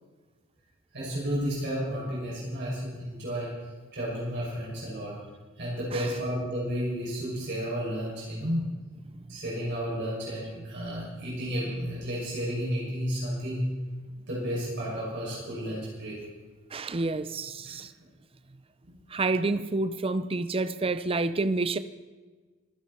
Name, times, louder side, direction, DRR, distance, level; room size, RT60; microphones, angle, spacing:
voice 1, 0.9-3.5 3.9-5.1 5.6-8.6 9.3-13.7 14.3-16.1 18.8-18.9, equal, 55° right, 6.8 m, -32 dB
voice 2, 16.7-17.9 19.1-21.8, right 3 dB, 25° right, 0.5 m, -29 dB
25.5 x 13.0 x 4.4 m
head